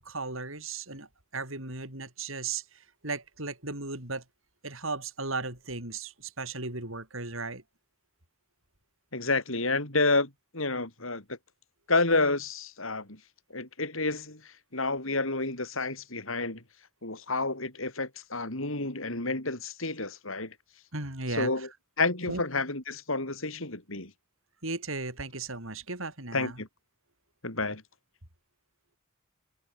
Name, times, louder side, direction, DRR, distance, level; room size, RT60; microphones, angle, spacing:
voice 1, 0.0-4.2 4.6-7.6 20.9-21.7 22.3-22.4 24.6-26.6, right 3 dB, 70° right, 7.9 m, -36 dB
voice 2, 9.1-11.2 11.9-13.2 13.5-14.4 14.7-16.6 17.0-20.5 21.4-21.7 22.0-24.1 26.3-26.7 27.4-27.8, left 3 dB, 70° left, 5.7 m, -29 dB
head